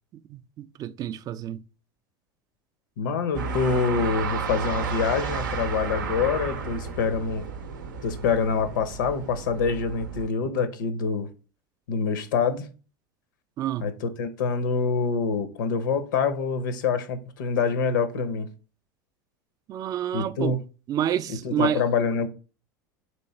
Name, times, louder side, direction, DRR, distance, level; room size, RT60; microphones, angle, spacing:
voice 1, 0.3-1.6 13.6-13.9 19.7-20.6 20.9-21.8, right 10 dB, 40° right, 0.3 m, -29 dB
voice 2, 3.0-7.4 8.0-11.3 11.9-12.7 13.8-18.5 20.1-20.6 21.3-22.3, left 5 dB, 80° left, 0.7 m, -26 dB
sound 1, 3.3-10.3, right 5 dB, 85° right, 0.6 m, -32 dB
3.1 x 3.1 x 4.1 m
hypercardioid pair, 90°, 10 cm